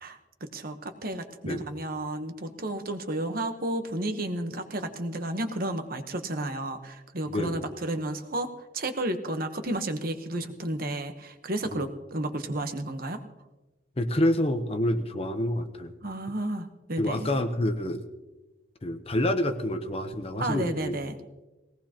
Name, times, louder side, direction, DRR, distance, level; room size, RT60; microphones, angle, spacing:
voice 1, 0.0-13.2 16.0-17.3 20.4-21.2, right 1 dB, 45° right, 7 dB, 1.1 m, -32 dB
voice 2, 7.3-7.6 11.7-11.9 14.0-15.9 17.0-18.0 18.8-21.0, left 1 dB, 30° left, 8 dB, 0.8 m, -27 dB
20.0 x 17.5 x 2.9 m, 1.1 s
head